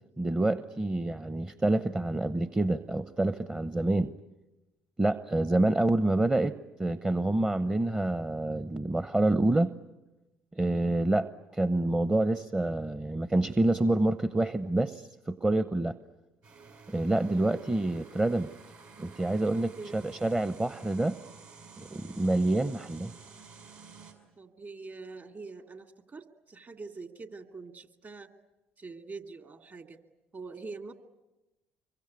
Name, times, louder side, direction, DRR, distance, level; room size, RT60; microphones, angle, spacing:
voice 1, 0.2-4.1 5.0-9.7 10.6-15.9 16.9-18.5 19.0-21.2 21.8-23.1, right 2 dB, 15° right, 13 dB, 0.9 m, -27 dB
sound 1, 16.4-24.1, right 4 dB, 65° right, 5.8 m, -51 dB
voice 2, 19.5-20.0 24.4-28.3 28.8-30.0 30.3-30.9, right 4 dB, 40° right, 7 dB, 2.4 m, -44 dB
25.5 x 23.5 x 9.6 m, 1.0 s
hypercardioid pair, 55°, 5 cm